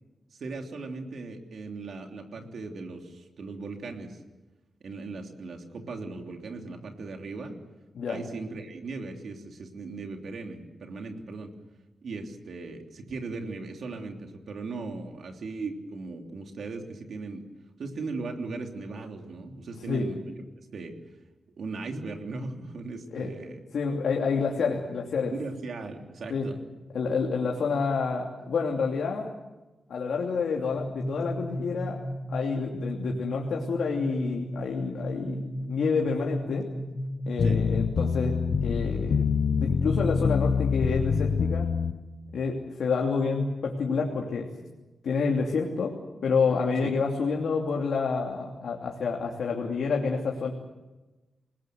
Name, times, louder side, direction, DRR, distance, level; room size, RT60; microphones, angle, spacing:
voice 1, 0.4-4.2 4.8-7.6 8.1-11.5 12.0-17.4 17.8-20.9 21.6-23.6 25.3-26.6 37.4-37.6 46.8-46.9, right 3 dB, 60° right, 3 dB, 3.3 m, -38 dB
voice 2, 23.7-25.3 26.3-26.5 26.9-29.3 29.9-32.0 32.3-36.7 37.3-38.4 38.6-39.2 39.5-41.7 42.3-44.5 45.0-45.9 46.2-50.5, left 5 dB, 70° left, 0 dB, 3.0 m, -28 dB
sound 1, 30.8-40.6, equal, 20° left, 1.8 m, -36 dB
sound 2, 37.4-41.9, left 6 dB, 50° left, 0.9 m, -26 dB
27.5 x 20.0 x 7.9 m, 1.1 s
wide cardioid pair, 180°, 0 cm